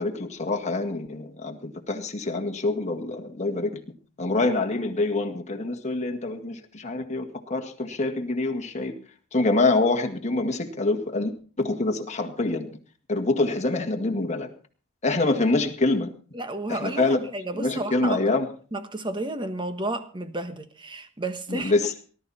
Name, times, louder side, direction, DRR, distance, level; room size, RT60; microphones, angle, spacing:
voice 1, 0.0-3.7 4.2-9.0 9.3-11.3 11.6-12.7 13.1-14.5 15.0-16.1 16.7-17.2 17.6-18.5 21.5-21.9, left 2 dB, 35° left, 1.9 m, -25 dB
voice 2, 16.3-18.2 18.7-21.7, right 2 dB, 25° right, 1.3 m, -32 dB
19.0 x 12.0 x 4.3 m
head